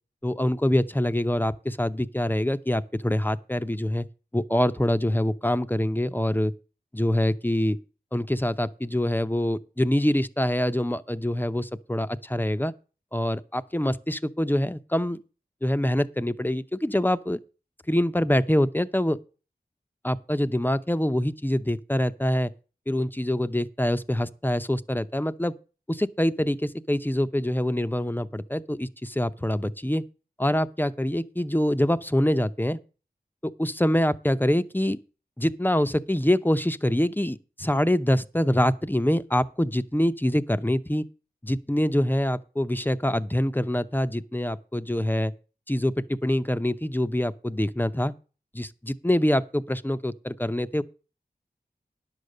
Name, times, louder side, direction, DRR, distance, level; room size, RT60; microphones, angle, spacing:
voice 1, 0.2-4.1 4.3-6.5 6.9-7.8 8.1-12.7 13.1-15.2 15.6-17.4 17.9-19.2 20.0-22.5 22.9-25.5 25.9-30.0 30.4-32.8 33.4-35.0 35.4-41.0 41.4-45.3 45.7-48.1 48.5-50.8, left 1 dB, 10° left, 0.7 m, -25 dB
10.5 x 6.6 x 6.6 m
wide cardioid pair, 45°, 17 cm